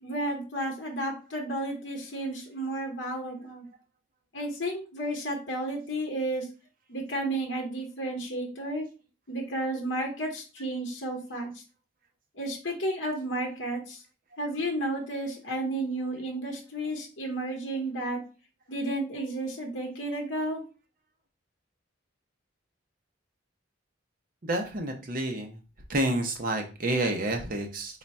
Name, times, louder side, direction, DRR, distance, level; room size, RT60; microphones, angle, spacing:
voice 1, 0.0-3.7 4.3-6.5 6.9-8.9 9.3-11.5 12.3-14.0 14.4-18.2 18.7-20.6, right 1 dB, 65° left, 1 dB, 0.9 m, -32 dB
voice 2, 24.4-25.6 25.9-28.0, right 1 dB, 45° right, 4 dB, 0.7 m, -29 dB
3.9 x 2.2 x 4.1 m, 0.33 s
head